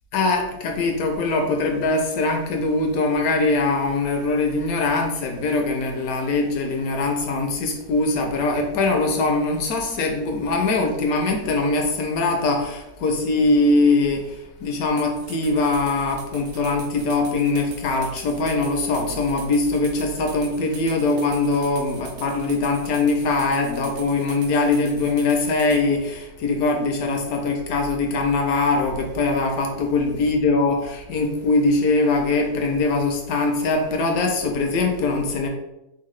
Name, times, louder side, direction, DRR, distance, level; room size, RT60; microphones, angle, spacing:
voice 1, 0.1-35.5, left 3 dB, 70° left, 3 dB, 0.9 m, -22 dB
sound 1, 15.0-25.8, right 5 dB, 70° right, 0.8 m, -42 dB
4.5 x 2.0 x 3.1 m, 0.91 s
omnidirectional pair, 1.8 m